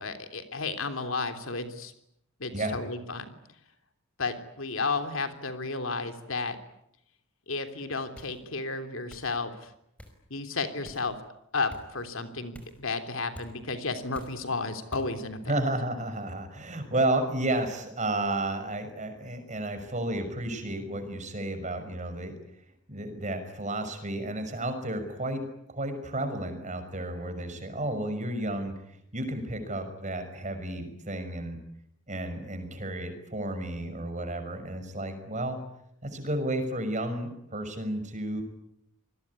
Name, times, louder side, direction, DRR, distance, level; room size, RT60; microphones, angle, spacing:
voice 1, 0.0-1.9 2.4-3.2 4.2-6.6 7.5-9.7 10.3-11.2 11.5-15.4, left 3 dB, 65° left, 8 dB, 3.3 m, -32 dB
sound 1, 8.2-8.4 9.1-9.3 10.0-10.2 10.8-11.1 11.7-11.9 12.5-12.8 13.3-13.5 14.1-14.4 14.9-15.1, equal, 5° left, 5.2 m, -46 dB
voice 2, 15.5-22.3 22.9-25.4 25.7-28.7 29.1-31.6 32.1-35.6 36.0-38.4, right 1 dB, 35° right, 8 dB, 6.0 m, -32 dB
27.5 x 21.5 x 9.8 m, 0.77 s
head